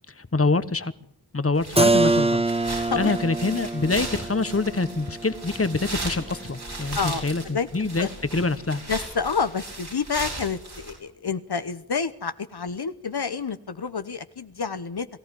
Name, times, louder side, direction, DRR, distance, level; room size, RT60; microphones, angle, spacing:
voice 1, 0.1-0.9 1.3-2.4 2.7-8.8, left 3 dB, 35° left, 14 dB, 1.3 m, -25 dB
sound 1, 1.5-10.9, right 2 dB, 75° right, 7.6 m, -37 dB
Keyboard (musical), 1.8-7.4, right 2 dB, 15° right, 0.9 m, -26 dB
voice 2, 6.9-7.7 8.0-8.1 8.9-15.1, left 5 dB, 75° left, 11 dB, 1.0 m, -29 dB
22.5 x 14.5 x 9.8 m, 0.68 s
wide cardioid pair, 50°, 39 cm